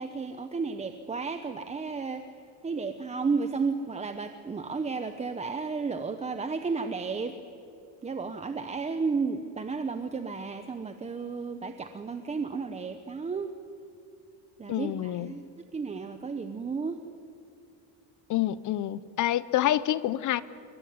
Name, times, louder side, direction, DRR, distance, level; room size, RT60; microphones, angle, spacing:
voice 1, 0.0-7.4 8.0-13.5 14.6-17.0, right 4 dB, 15° right, 8 dB, 0.8 m, -33 dB
voice 2, 14.7-15.3 18.3-20.4, left 13 dB, 45° left, 17 dB, 0.8 m, -27 dB
27.0 x 23.0 x 9.6 m, 2.5 s
cardioid pair, 165°, 42 cm